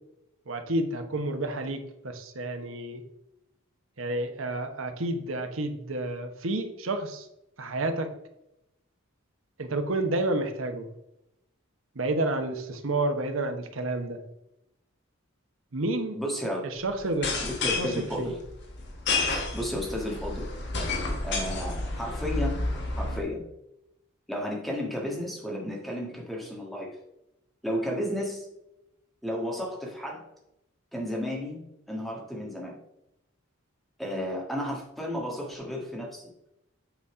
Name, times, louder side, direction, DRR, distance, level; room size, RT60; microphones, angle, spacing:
voice 1, 0.5-3.0 4.0-7.3 7.6-8.1 9.6-10.9 11.9-14.2 15.7-16.2 16.6-17.3 17.8-17.9 18.2-18.3, right 2 dB, 65° right, 6 dB, 1.0 m, -30 dB
voice 2, 16.1-16.6 17.4-18.4 19.5-20.5 21.2-23.4 24.3-26.9 27.6-28.5 29.2-30.2 30.9-32.8 34.0-36.3, equal, ahead, -1 dB, 1.6 m, -33 dB
sound 1, 17.1-23.2, left 3 dB, 55° left, 1.5 m, -30 dB
8.2 x 4.1 x 4.8 m, 0.85 s
head